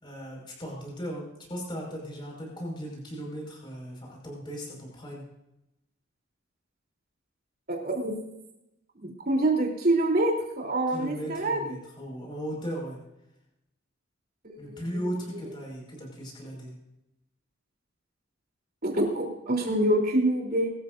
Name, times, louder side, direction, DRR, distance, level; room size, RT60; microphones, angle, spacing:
voice 1, 0.0-5.2 10.9-13.0 14.6-16.7, equal, 25° left, -2 dB, 5.3 m, -37 dB
voice 2, 7.7-8.1 9.0-11.7 14.4-14.8 18.8-20.7, right 1 dB, 45° right, 0 dB, 3.4 m, -26 dB
23.0 x 13.5 x 2.6 m, 0.88 s
head